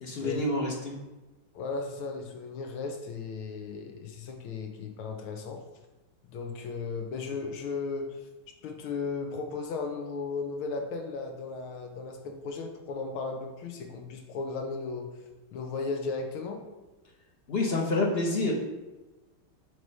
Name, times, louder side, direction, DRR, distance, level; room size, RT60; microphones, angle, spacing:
voice 1, 0.0-1.0 17.5-18.5, left 2 dB, 45° left, -1 dB, 0.8 m, -28 dB
voice 2, 1.5-5.6 6.3-8.3 8.6-15.1 15.5-16.6, left 4 dB, 85° left, 4 dB, 1.8 m, -35 dB
7.6 x 3.2 x 5.4 m, 1.1 s
omnidirectional pair, 2.2 m